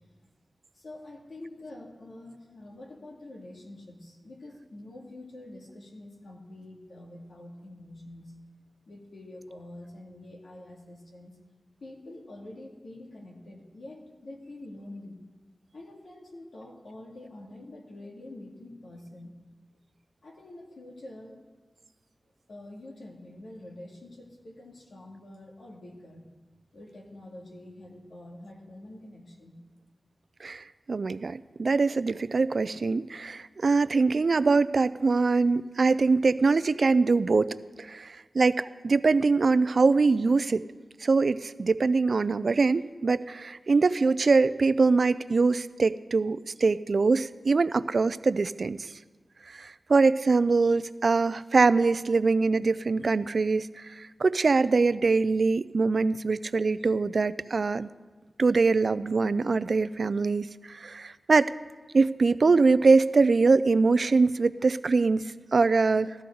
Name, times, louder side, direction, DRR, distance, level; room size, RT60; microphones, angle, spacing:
voice 1, 0.7-8.4 8.9-11.3 11.8-15.2 15.7-19.4 19.7-19.8 20.2-21.4 22.5-26.4 26.7-29.6, left 1 dB, 80° left, -1 dB, 2.2 m, -46 dB
voice 2, 30.4-40.6 41.0-48.9 49.5-57.9 58.4-61.5 61.9-66.1, right 4 dB, 65° right, 16 dB, 0.4 m, -23 dB
16.0 x 13.0 x 3.9 m, 1.3 s
wide cardioid pair, 70°, 0 cm